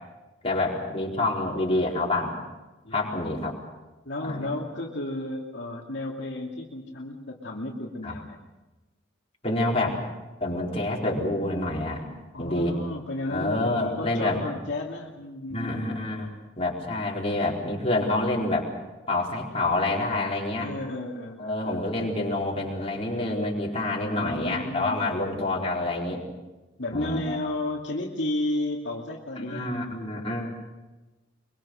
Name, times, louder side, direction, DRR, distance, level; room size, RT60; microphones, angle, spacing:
voice 1, 0.4-2.4 2.9-3.6 4.2-4.5 8.0-8.2 9.4-10.0 10.4-12.1 12.4-12.7 13.3-14.4 15.5-16.3 16.6-18.7 19.1-20.7 21.4-26.2 26.9-27.4 29.4-30.5, left 2 dB, 30° left, -2 dB, 4.5 m, -27 dB
voice 2, 2.8-3.5 4.1-8.4 12.3-16.0 20.6-21.9 23.9-25.7 26.8-29.8, left 1 dB, 65° left, -1 dB, 2.6 m, -33 dB
24.0 x 23.5 x 6.5 m, 1.1 s
head